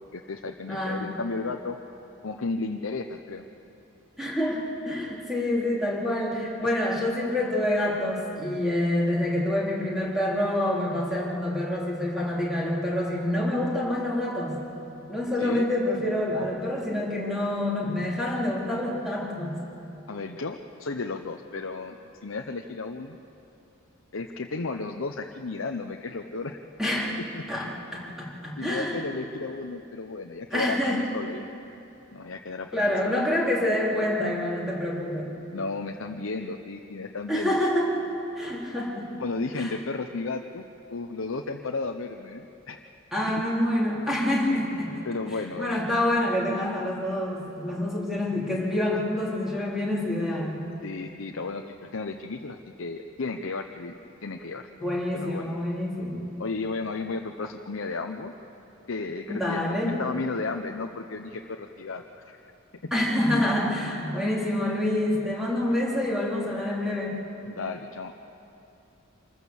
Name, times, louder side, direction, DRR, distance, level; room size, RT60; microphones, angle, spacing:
voice 1, 0.0-1.8 2.2-3.4 6.6-6.7 15.4-15.7 20.1-22.0 22.2-23.2 24.1-26.6 27.3-27.4 28.6-31.5 32.1-33.1 35.5-37.6 39.2-40.6 40.9-42.8 45.0-45.9 50.8-53.9 54.2-55.6 56.4-58.3 58.9-62.4 62.8-62.9 67.5-68.1, left 3 dB, 80° left, 3 dB, 0.8 m, -34 dB
voice 2, 0.7-1.0 4.2-14.6 15.1-19.6 26.8-27.1 27.5-29.0 30.5-31.0 32.7-35.3 37.3-37.9 38.4-39.1 39.5-39.7 43.1-45.0 45.6-50.6 54.8-56.3 59.3-60.0 62.9-67.1, left 1 dB, ahead, -5 dB, 3.7 m, -27 dB
26.0 x 14.5 x 7.1 m, 2.8 s
head